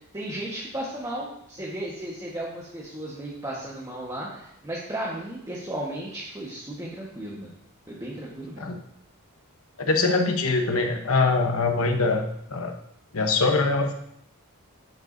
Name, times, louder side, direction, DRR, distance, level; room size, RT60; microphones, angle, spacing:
voice 1, 0.1-7.5 7.9-8.7, right 1 dB, 15° right, -5 dB, 1.4 m, -35 dB
voice 2, 9.9-12.2 12.5-12.7 13.1-13.9, left 3 dB, 70° left, 4 dB, 1.0 m, -23 dB
11.0 x 8.1 x 2.7 m, 0.75 s
head